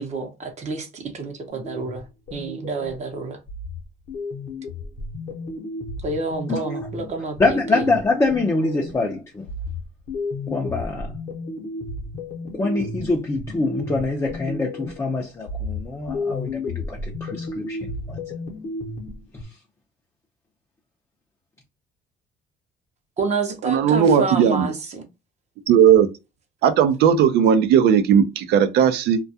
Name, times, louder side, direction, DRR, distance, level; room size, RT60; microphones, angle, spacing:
voice 1, 0.0-3.4 6.0-7.9 23.2-25.0, right 4 dB, 45° right, 0.7 m, -29 dB
sound 1, 1.5-3.1 3.5-9.1 9.5-15.1 15.5-19.4, left 2 dB, 50° left, 0.8 m, -33 dB
voice 2, 7.4-9.5 10.5-11.1 12.5-18.2, left 3 dB, 20° left, 0.5 m, -24 dB
voice 3, 23.6-24.7 25.7-26.1 26.6-29.2, right 8 dB, 75° right, 0.5 m, -16 dB
2.3 x 2.2 x 2.6 m
cardioid pair, 110°, 17 cm